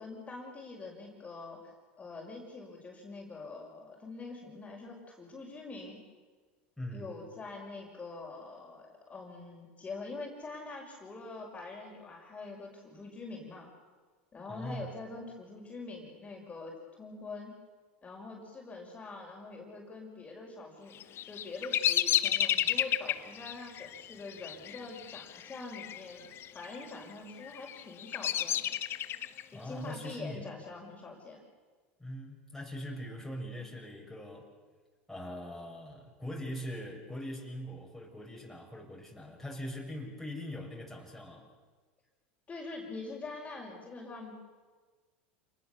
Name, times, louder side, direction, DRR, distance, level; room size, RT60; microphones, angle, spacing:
voice 1, 0.0-6.0 6.9-13.7 14.3-17.5 18.0-26.3 26.5-28.7 29.5-31.4 42.5-44.4, left 3 dB, 20° left, -1 dB, 5.9 m, -44 dB
voice 2, 6.8-7.1 14.5-14.9 29.5-30.5 32.0-34.5 35.1-41.5, equal, 5° left, -2 dB, 6.9 m, -41 dB
Bird vocalization bird call bird song, 20.9-26.0 26.2-26.8 27.4-29.4, left 11 dB, 40° left, 1.1 m, -31 dB
28.0 x 20.0 x 7.2 m, 1.4 s
hypercardioid pair, 95°, 6 cm